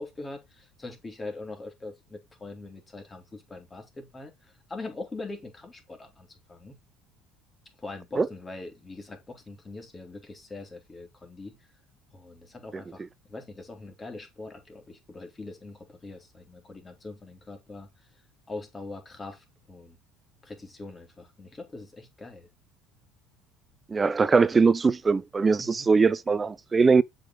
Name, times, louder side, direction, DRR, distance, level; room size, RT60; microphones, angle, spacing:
voice 1, 0.0-6.8 7.8-11.6 12.1-17.9 18.5-20.0 20.4-22.5 25.6-25.9, left 2 dB, 20° left, 3.1 m, -42 dB
voice 2, 23.9-27.0, right 4 dB, 25° right, 0.6 m, -21 dB
7.2 x 5.2 x 3.9 m
supercardioid pair, 95°, 0 cm